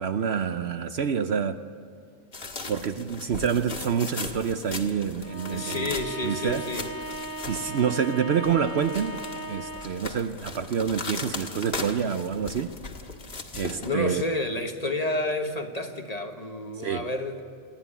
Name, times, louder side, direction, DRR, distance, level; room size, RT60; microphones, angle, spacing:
voice 1, 0.0-1.6 2.7-5.9 6.2-6.7 7.5-9.2 9.5-12.8 13.5-14.2 16.8-17.1, right 7 dB, 60° right, 10 dB, 0.8 m, -27 dB
sound 1, 2.3-8.1 8.4-13.9, left 3 dB, 50° left, 1.7 m, -38 dB
Bowed string instrument, 5.2-10.1, right 1 dB, 25° right, 1.8 m, -37 dB
voice 2, 5.4-6.9 13.8-17.4, left 2 dB, 30° left, 6 dB, 1.2 m, -30 dB
27.5 x 10.5 x 10.0 m, 2.3 s
omnidirectional pair, 1.4 m